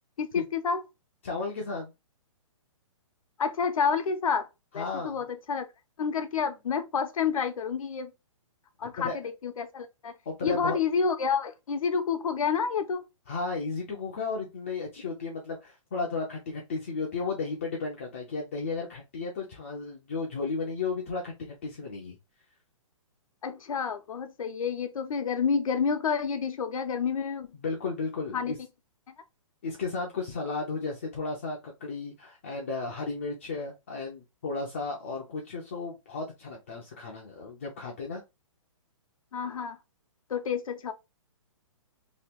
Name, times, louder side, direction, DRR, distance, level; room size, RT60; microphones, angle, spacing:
voice 1, 0.2-0.8 3.4-4.5 4.7-5.7 6.0-8.1 8.8-10.1 10.4-13.0 23.4-27.5 28.3-28.5 39.3-39.8 40.3-40.9, left 6 dB, 85° left, 0.7 m, -29 dB
voice 2, 1.2-1.9 4.8-5.2 9.0-9.2 10.3-10.8 13.3-22.2 27.5-28.6 29.6-38.2, left 4 dB, 25° left, 0.4 m, -34 dB
2.9 x 2.2 x 3.4 m
hypercardioid pair, 175°, 17 cm